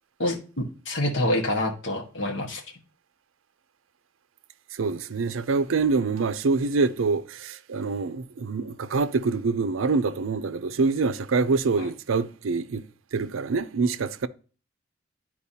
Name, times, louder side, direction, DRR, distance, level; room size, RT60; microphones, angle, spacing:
voice 1, 0.8-2.6 11.8-11.9, left 1 dB, 60° left, 1.5 m, -26 dB
voice 2, 4.7-12.9 13.1-14.3, right 4 dB, 80° right, 0.5 m, -25 dB
11.5 x 4.6 x 2.8 m
head